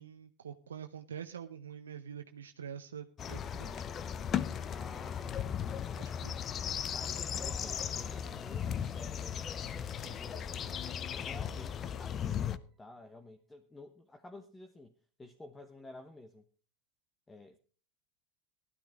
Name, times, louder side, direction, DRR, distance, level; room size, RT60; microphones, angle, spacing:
voice 1, 0.0-3.9 6.0-6.4 10.0-10.2, right 8 dB, 90° right, 7 dB, 0.7 m, -46 dB
sound 1, 3.2-12.6, left 8 dB, 35° left, 0.7 m, -37 dB
voice 2, 4.7-6.1 6.9-9.4 10.0-16.5 17.3-17.6, left 2 dB, 15° left, 6 dB, 1.2 m, -52 dB
sound 2, 6.2-13.0, right 5 dB, 25° right, 2.1 m, -60 dB
16.0 x 12.5 x 3.6 m, 0.39 s
hypercardioid pair, 95°, 0 cm